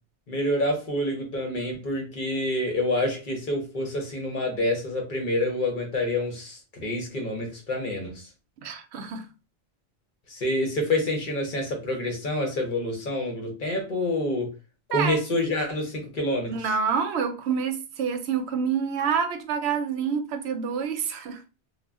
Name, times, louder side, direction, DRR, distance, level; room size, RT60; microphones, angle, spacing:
voice 1, 0.3-8.3 10.3-14.5 14.9-16.7, left 1 dB, 55° left, 0.8 m, -27 dB
voice 2, 8.6-9.2 14.9-15.2 16.5-21.4, right 6 dB, 85° right, 0.8 m, -27 dB
2.1 x 2.1 x 3.5 m
omnidirectional pair, 1.1 m